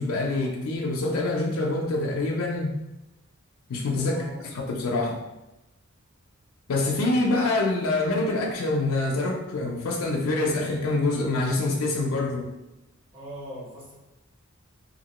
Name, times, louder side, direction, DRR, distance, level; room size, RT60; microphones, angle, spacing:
voice 1, 0.0-2.8 3.7-5.2 6.7-12.5, left 2 dB, 80° left, 0 dB, 0.5 m, -26 dB
voice 2, 4.0-4.4 13.1-13.9, equal, 30° right, -7 dB, 1.2 m, -40 dB
2.9 x 2.6 x 2.9 m, 0.96 s
head